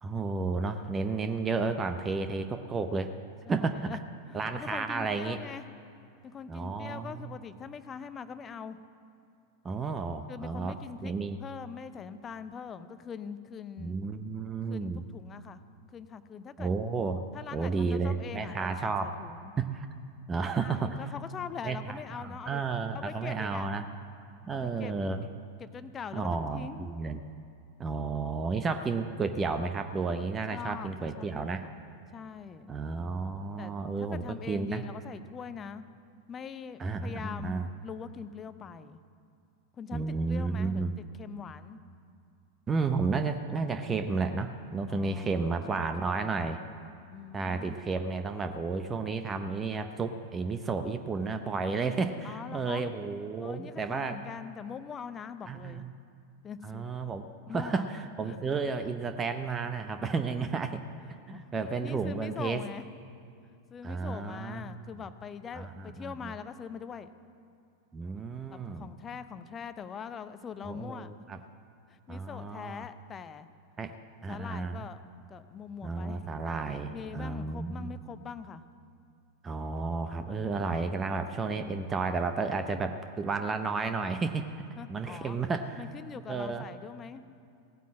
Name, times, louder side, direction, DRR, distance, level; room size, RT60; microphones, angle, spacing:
voice 1, 0.0-3.1 3.5-3.9 4.3-5.4 6.5-7.3 9.6-10.7 11.0-11.4 13.8-15.1 16.6-17.2 17.5-19.1 19.6-19.9 20.3-21.0 21.6-23.9 24.4-25.3 26.1-27.2 27.8-31.6 32.7-34.8 36.8-37.7 39.9-40.9 42.7-46.6 47.3-54.2 55.5-55.9 56.6-57.3 57.5-60.8 61.3-62.6 63.8-64.8 65.5-66.3 67.9-68.9 70.7-71.4 72.1-72.9 73.8-73.9 74.2-74.8 75.8-77.9 79.4-84.5 84.9-85.8 86.3-86.6, right 4 dB, 20° right, 8 dB, 0.7 m, -32 dB
voice 2, 3.5-4.0 4.3-5.7 6.2-8.8 10.3-11.1 11.4-14.0 14.7-15.6 15.9-16.7 17.3-19.5 20.6-22.6 22.9-23.7 24.5-25.0 25.6-26.9 30.5-31.8 32.1-32.7 33.6-33.7 34.0-35.8 36.3-39.0 39.7-41.8 44.9-46.7 47.1-47.8 52.2-52.8 53.4-55.9 56.4-56.8 57.5-57.9 58.2-58.4 61.3-62.8 63.7-67.1 68.5-71.1 71.9-73.5 74.3-75.0 75.3-76.3 76.9-78.6 84.8-85.4 85.8-87.2, left 7 dB, 25° left, 12 dB, 0.7 m, -43 dB
17.0 x 9.3 x 7.5 m, 2.5 s
figure-of-eight pair, 90°, 0 cm